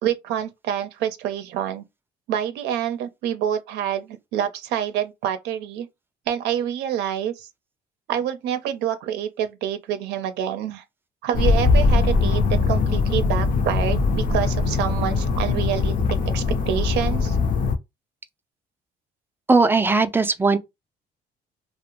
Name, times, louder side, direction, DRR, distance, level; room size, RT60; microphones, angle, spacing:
voice 1, 0.0-1.8 2.3-5.9 6.3-7.5 8.1-10.8 11.2-17.4, right 10 dB, 85° right, 0.5 m, -27 dB
sound 1, 11.3-17.8, left 4 dB, 55° left, 0.6 m, -21 dB
voice 2, 19.5-20.6, right 3 dB, 15° right, 0.3 m, -18 dB
2.5 x 2.0 x 2.9 m
cardioid pair, 110°, 17 cm